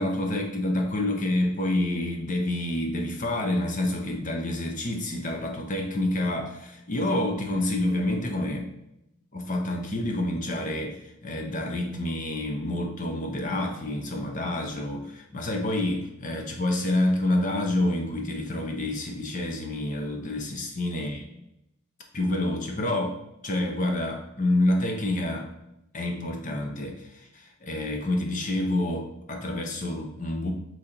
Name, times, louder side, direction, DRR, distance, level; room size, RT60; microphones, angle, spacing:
voice 1, 0.0-8.7 9.3-21.2 22.1-23.2 23.4-25.5 25.9-30.5, left 1 dB, 35° left, 2 dB, 0.7 m, -28 dB
4.2 x 3.2 x 3.7 m, 0.84 s
head